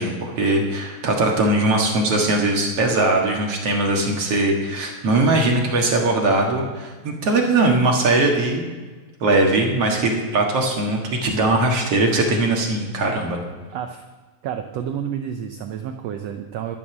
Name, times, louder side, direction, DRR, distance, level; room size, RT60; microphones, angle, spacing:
voice 1, 0.0-8.7 9.2-13.4, right 2 dB, 50° right, 0 dB, 2.3 m, -20 dB
voice 2, 13.7-14.0 14.4-16.8, right 9 dB, 90° right, 6 dB, 1.4 m, -30 dB
12.5 x 11.0 x 6.0 m, 1.4 s
omnidirectional pair, 3.9 m